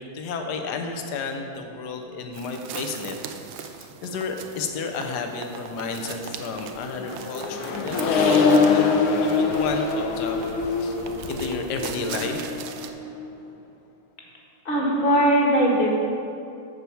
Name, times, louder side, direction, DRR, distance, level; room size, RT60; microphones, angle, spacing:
voice 1, 0.0-3.2 3.5-8.9 9.2-12.4, left 4 dB, 60° left, 4 dB, 1.3 m, -32 dB
sound 1, 2.3-12.9, right 8 dB, 85° right, 1.5 m, -40 dB
Accelerating revving vroom, 6.5-13.2, left 4 dB, 80° left, 1.7 m, -24 dB
voice 2, 14.6-15.9, equal, 30° left, -2 dB, 1.5 m, -19 dB
11.5 x 4.5 x 7.0 m, 2.6 s
omnidirectional pair, 2.3 m